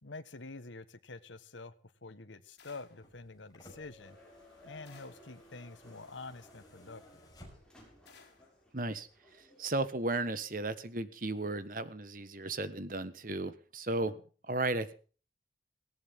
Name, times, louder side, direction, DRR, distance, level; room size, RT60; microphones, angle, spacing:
voice 1, 0.0-1.7 2.0-4.2 4.6-7.0, left 3 dB, 85° left, 11 dB, 1.4 m, -47 dB
sound 1, 2.6-3.1 4.8-5.4 8.0-8.6, left 5 dB, 65° left, 5.0 m, -59 dB
sound 2, 2.9-8.0 9.2-9.3, left 1 dB, 20° left, 5.7 m, -58 dB
sound 3, 4.0-9.8, left 1 dB, 5° left, 6.5 m, -60 dB
voice 2, 8.7-9.1 9.6-14.1 14.5-14.9, right 2 dB, 45° right, 13 dB, 1.4 m, -34 dB
18.5 x 17.5 x 3.7 m, 0.39 s
head